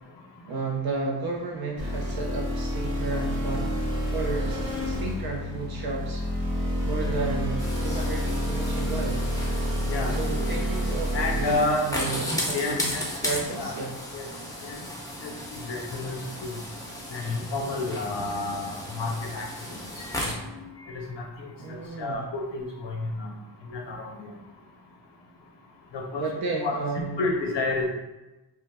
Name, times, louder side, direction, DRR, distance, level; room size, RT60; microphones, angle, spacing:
voice 1, 0.5-3.8 4.1-6.2 6.8-9.2 10.2-13.9 21.6-22.2 26.2-27.2, right 3 dB, 55° right, -1 dB, 0.5 m, -32 dB
sound 1, 1.8-11.6, equal, 90° right, 1.3 m, -28 dB
sound 2, 7.6-20.3, left 1 dB, 10° left, 0.5 m, -35 dB
voice 2, 9.9-10.4 11.1-11.9 12.5-13.0 13.6-13.8 14.1-14.3 14.6-14.8 15.2-16.5 17.1-20.3 20.9-23.3 23.7-24.2 25.9-26.3 26.6-26.8 27.2-27.9, left 3 dB, 70° left, 1 dB, 0.7 m, -30 dB
3.1 x 2.0 x 3.4 m, 1.1 s
wide cardioid pair, 115°, 43 cm